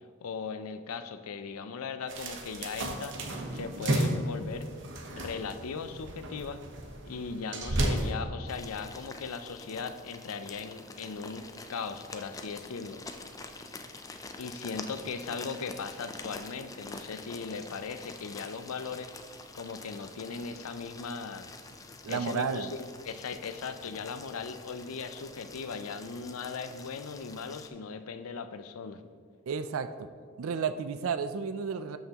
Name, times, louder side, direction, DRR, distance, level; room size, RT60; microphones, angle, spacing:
voice 1, 0.2-3.2 3.5-4.7 5.2-6.6 7.0-13.0 14.4-19.1 19.5-21.5 22.1-29.0, left 5 dB, 85° left, 10 dB, 0.5 m, -38 dB
sound 1, 2.1-8.1, right 1 dB, 55° right, 1.0 m, -33 dB
sound 2, 8.5-27.7, left 3 dB, 15° left, 0.4 m, -46 dB
voice 2, 22.0-22.7 29.5-30.1 30.4-32.0, right 6 dB, 75° right, 12 dB, 0.4 m, -32 dB
12.5 x 5.6 x 2.9 m, 2.1 s
head